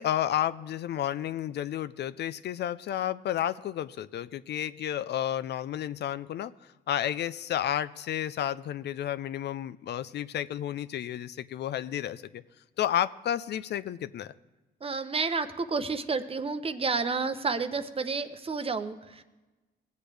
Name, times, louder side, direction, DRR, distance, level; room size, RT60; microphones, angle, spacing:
voice 1, 0.0-6.5 6.9-12.4 12.8-14.3, left 11 dB, 60° left, 13 dB, 0.4 m, -31 dB
voice 2, 14.8-19.2, right 4 dB, 30° right, 10 dB, 0.7 m, -30 dB
18.5 x 8.1 x 3.3 m, 1.2 s
cardioid pair, 90°, 20 cm